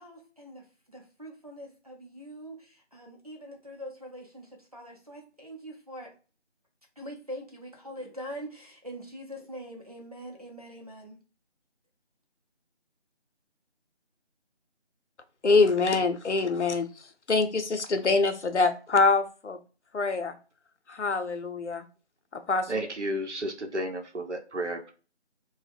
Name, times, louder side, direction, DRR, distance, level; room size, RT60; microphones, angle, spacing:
voice 1, 0.0-6.1 7.0-11.2, equal, 35° right, -1 dB, 0.7 m, -43 dB
voice 2, 15.4-16.9 17.3-19.6 19.9-20.4 20.9-21.8 22.3-22.7, left 3 dB, 80° left, 7 dB, 0.6 m, -24 dB
voice 3, 22.7-24.9, right 1 dB, 80° right, 4 dB, 0.8 m, -32 dB
2.1 x 2.0 x 3.4 m, 0.36 s
figure-of-eight pair, 165°, 35 cm